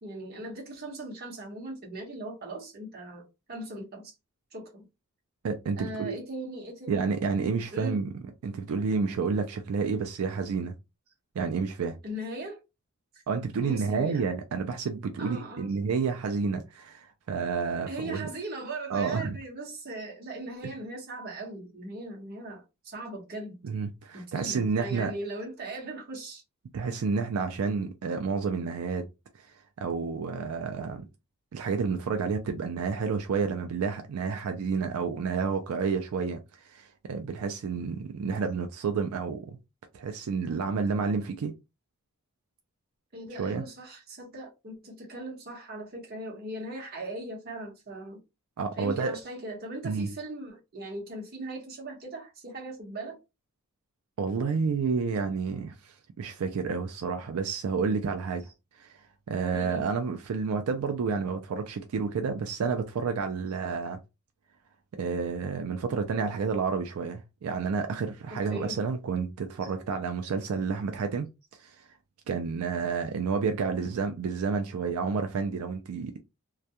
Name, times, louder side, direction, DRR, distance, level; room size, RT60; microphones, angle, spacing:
voice 1, 0.0-4.1 4.5-4.9 5.8-7.1 7.7-8.0 12.0-12.6 13.6-14.3 15.2-15.8 17.9-23.6 24.1-26.4 43.1-48.2 48.8-53.2 59.5-59.9 68.3-68.8 69.6-69.7, right 1 dB, 45° right, 0.9 m, -39 dB
voice 2, 5.4-6.2 6.9-8.1 8.4-10.7 11.4-12.0 13.3-18.3 18.9-19.4 23.6-25.1 26.7-29.1 29.8-31.1 31.5-36.4 36.6-39.6 39.9-41.5 43.3-43.6 48.6-49.1 49.8-50.1 54.2-58.5 58.8-59.0 59.3-64.0 65.0-71.3 71.6-71.9 72.3-76.2, right 5 dB, 80° right, 0.4 m, -30 dB
2.3 x 2.1 x 2.7 m
head